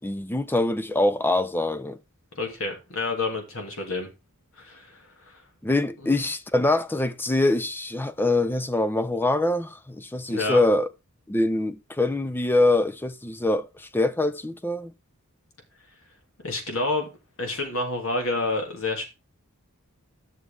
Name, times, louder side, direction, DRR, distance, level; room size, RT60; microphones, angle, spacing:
voice 1, 0.0-2.0 5.6-10.9 11.3-14.9, left 2 dB, 10° left, 0.5 m, -24 dB
voice 2, 2.4-4.1 4.6-5.4 6.0-6.2 10.3-10.6 16.4-17.1 17.4-19.0, left 3 dB, 65° left, 2.8 m, -29 dB
11.0 x 6.6 x 3.6 m
head